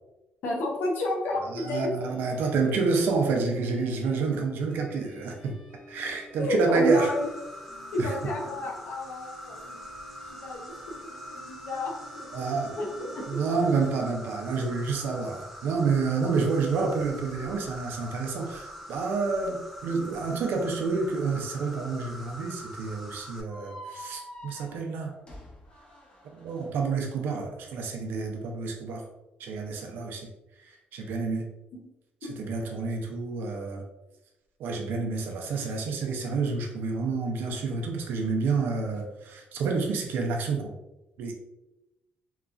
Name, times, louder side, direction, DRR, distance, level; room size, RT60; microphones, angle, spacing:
voice 1, 0.4-2.1 6.4-7.3 7.9-9.8 10.3-12.4 12.7-13.2, left 1 dB, 70° left, 0 dB, 0.7 m, -31 dB
voice 2, 1.5-5.5 5.9-7.1 8.0-8.1 12.3-12.7 13.3-25.1 26.3-29.0 29.4-30.3 30.6-31.5 32.4-33.8 34.6-40.7 41.2-41.3, right 4 dB, 80° right, 2 dB, 0.5 m, -28 dB
sound 1, 2.0-14.2, left 1 dB, 50° left, 1.0 m, -50 dB
Insect, 6.9-23.4, equal, ahead, 0.3 m, -43 dB
sound 2, 23.5-26.7, equal, 30° left, 0.7 m, -46 dB
2.9 x 2.3 x 2.4 m, 0.95 s
cardioid pair, 150°, 3 cm